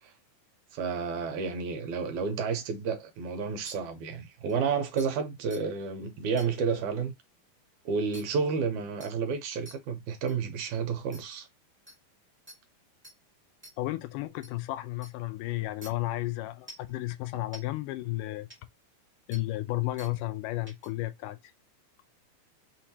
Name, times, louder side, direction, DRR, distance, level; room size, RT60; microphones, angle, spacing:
voice 1, 0.7-7.1 7.9-11.5, right 5 dB, 75° right, 2.1 m, -31 dB
sound 1, 3.6-3.7 4.5-4.6 5.0-5.1 5.5-5.6 6.4-6.5 8.1-8.2 9.0-9.1 9.6-9.7 10.3-10.4 11.1-11.2 11.9-12.0 12.5-12.6 13.0-13.1 13.6-13.7 14.4-14.5 15.0-15.1 15.8-15.9 16.7-16.9 17.5-17.6 18.5-18.6 19.3-19.4 20.0-20.1 20.7-20.9, equal, 10° right, 0.8 m, -47 dB
voice 2, 13.8-18.5 19.3-21.4, left 18 dB, 85° left, 2.1 m, -33 dB
5.9 x 2.7 x 2.8 m
omnidirectional pair, 3.8 m